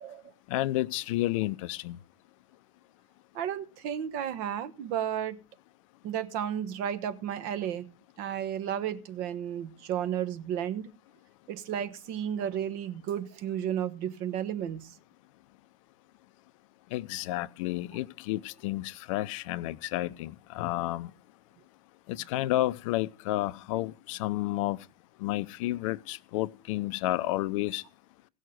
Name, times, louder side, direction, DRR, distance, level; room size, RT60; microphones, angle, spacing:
voice 1, 0.5-2.0 16.9-21.1 22.1-24.8 25.2-27.8, left 16 dB, 55° left, 0.6 m, -31 dB
voice 2, 3.3-5.4 6.0-7.9 8.2-10.9 11.5-15.0, right 9 dB, 50° right, 1.2 m, -33 dB
16.5 x 6.4 x 6.3 m
hypercardioid pair, 90°, 20 cm